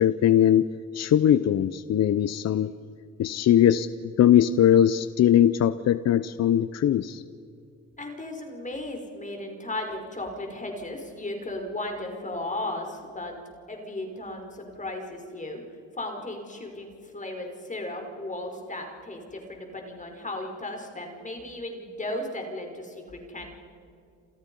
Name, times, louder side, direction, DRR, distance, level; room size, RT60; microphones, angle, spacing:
voice 1, 0.0-2.7 3.2-3.9 4.2-7.2, left 10 dB, 60° left, 14 dB, 0.8 m, -20 dB
voice 2, 8.0-13.4 13.7-15.6 15.9-23.5, left 1 dB, 25° left, 3 dB, 5.0 m, -35 dB
28.5 x 28.0 x 5.5 m, 2.4 s
cardioid pair, 90°, 30 cm